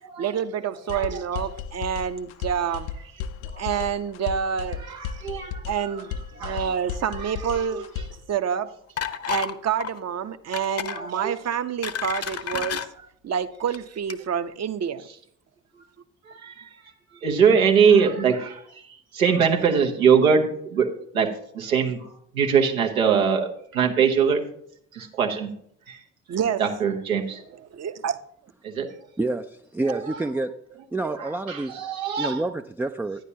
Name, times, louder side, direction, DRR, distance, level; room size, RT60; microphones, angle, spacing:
voice 1, 0.2-2.9 3.6-5.0 5.7-7.9 8.3-8.7 9.3-12.9 13.2-15.0 26.3-26.6 27.6-28.2, right 8 dB, 40° right, 0.8 m, -28 dB
sound 1, 0.9-8.3, left 7 dB, 65° left, 0.7 m, -35 dB
voice 2, 4.9-5.6 6.4-6.6 7.5-7.6 10.9-11.3 16.3-16.7 17.2-18.8 19.1-22.1 22.3-24.4 24.9-25.5 25.9-26.0 26.6-27.4 28.6-28.9 29.9-30.2 31.1-32.4, right 6 dB, 90° right, 1.0 m, -22 dB
sound 2, 9.0-9.5 9.8-10.0 10.5-11.0 11.5-12.9 13.6-13.8 14.1-14.2, left 8 dB, 35° left, 0.8 m, -30 dB
voice 3, 29.2-30.6 30.9-31.8 32.2-33.2, right 2 dB, 5° right, 0.3 m, -28 dB
11.5 x 9.9 x 2.8 m
figure-of-eight pair, 50°, 40 cm